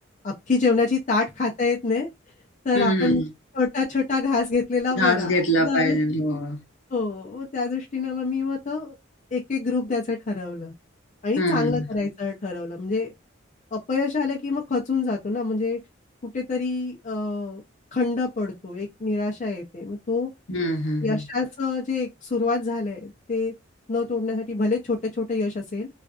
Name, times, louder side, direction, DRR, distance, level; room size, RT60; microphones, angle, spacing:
voice 1, 0.2-2.1 2.6-3.2 3.5-6.0 6.9-9.0 9.3-10.7 11.2-13.1 13.7-15.8 16.3-17.6 17.9-20.3 21.0-23.5 23.9-25.9, left 4 dB, 40° left, 0.5 m, -26 dB
voice 2, 2.7-3.3 4.9-6.6 11.4-11.9 20.5-21.2, equal, 70° left, 0.8 m, -23 dB
2.5 x 2.3 x 2.3 m
head